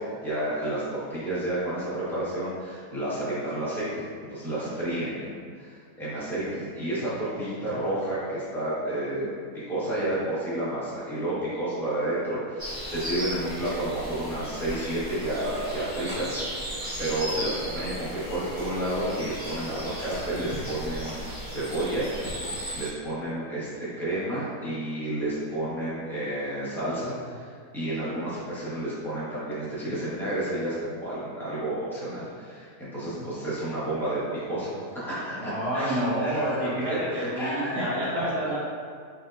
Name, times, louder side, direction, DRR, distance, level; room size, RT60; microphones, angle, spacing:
voice 1, 0.0-22.1 22.7-27.5 27.7-34.2 34.5-38.3, right 1 dB, ahead, -12 dB, 1.2 m, -31 dB
sound 1, 12.6-22.9, equal, 20° right, 0.6 m, -36 dB
voice 2, 35.3-38.6, equal, 70° right, -10 dB, 2.0 m, -28 dB
4.4 x 3.5 x 2.7 m, 2.1 s
omnidirectional pair, 1.8 m